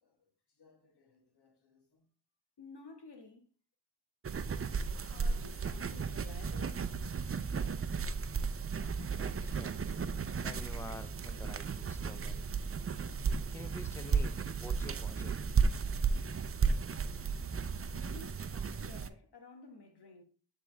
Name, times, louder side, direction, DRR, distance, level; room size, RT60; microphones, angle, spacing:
voice 1, 0.6-2.1 2.6-3.5 5.1-6.8 17.4-20.2, left 3 dB, 70° left, 1.4 m, -54 dB
sound 1, 4.2-19.1, right 5 dB, 35° right, 0.6 m, -34 dB
voice 2, 9.2-9.8 10.4-12.5 13.5-15.4, left 2 dB, 5° left, 0.6 m, -48 dB
8.2 x 3.6 x 3.3 m
cardioid pair, 45°, 41 cm